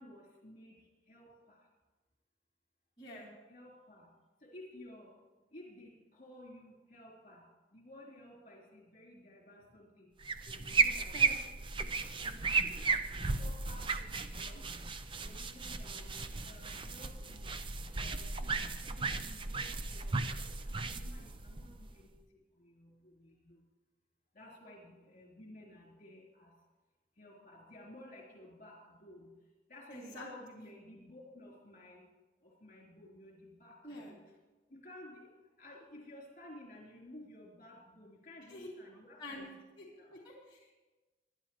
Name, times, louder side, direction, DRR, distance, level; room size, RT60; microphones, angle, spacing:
voice 1, 0.0-1.7 3.5-10.2 10.4-11.4 11.9-13.0 13.4-14.8 15.2-17.6 17.9-23.6 24.3-26.6 27.1-32.1 32.4-34.2 34.7-39.5 40.0-40.1, left 1 dB, 50° left, -3 dB, 3.7 m, -55 dB
voice 2, 3.0-3.3 11.1-11.3 29.9-30.3 30.6-30.7 33.8-34.1 38.5-38.7 39.2-39.5 39.8-40.7, left 1 dB, 25° left, -8 dB, 2.9 m, -47 dB
sound 1, 10.2-22.2, right 4 dB, 30° right, 0.5 m, -35 dB
22.0 x 10.5 x 3.1 m, 1.2 s
head